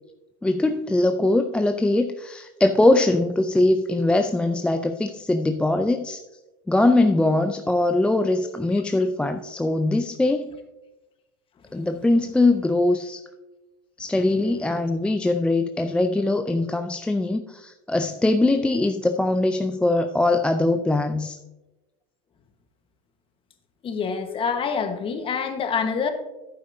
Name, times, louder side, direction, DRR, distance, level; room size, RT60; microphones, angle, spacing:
voice 1, 0.4-6.2 6.7-10.5 11.7-13.2 14.0-21.4, left 2 dB, 5° left, 7 dB, 0.4 m, -22 dB
voice 2, 23.8-26.1, left 6 dB, 30° left, 7 dB, 1.2 m, -26 dB
10.5 x 9.0 x 2.7 m, 1.0 s
supercardioid pair, 105°, 17 cm